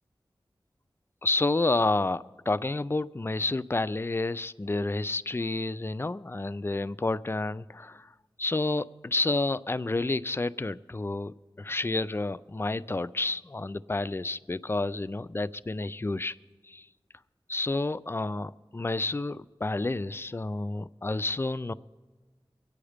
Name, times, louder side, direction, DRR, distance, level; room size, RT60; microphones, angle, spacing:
voice 1, 1.2-8.1 8.4-16.4 16.7-16.9 17.5-21.7, left 2 dB, 25° left, 16 dB, 0.4 m, -30 dB
23.5 x 8.8 x 5.0 m, 1.3 s
wide cardioid pair, 65°, 9 cm